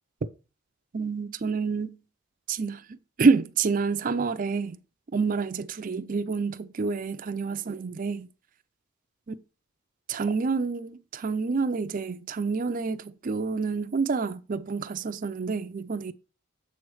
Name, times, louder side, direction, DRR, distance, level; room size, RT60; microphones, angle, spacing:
voice 1, 0.9-2.0 2.5-4.8 5.1-8.3 9.3-9.4 10.1-16.1, right 4 dB, 40° right, 0.4 m, -28 dB
7.7 x 3.1 x 6.1 m
head